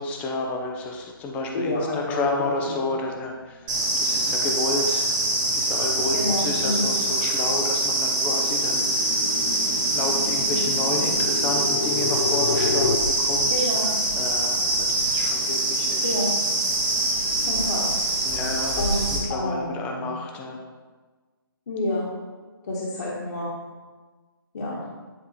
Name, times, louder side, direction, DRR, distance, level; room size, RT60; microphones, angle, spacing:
voice 1, 0.0-5.1 5.6-9.2 9.9-12.9 13.2-16.1 18.2-20.6, left 2 dB, 10° left, 1 dB, 0.6 m, -31 dB
voice 2, 1.5-2.2 2.7-2.8 6.1-6.9 13.5-13.9 16.0-16.3 17.4-17.9 18.8-19.0 19.3-20.1 21.7-22.1 22.7-23.5 24.5-24.9, left 1 dB, 50° left, -6 dB, 1.4 m, -28 dB
sound 1, 3.3-3.6 4.0-13.0, left 5 dB, 65° left, 0.6 m, -32 dB
sound 2, 3.7-19.2, right 2 dB, 25° right, 1.7 m, -24 dB
9.7 x 3.6 x 4.2 m, 1.4 s
hypercardioid pair, 155°, 12 cm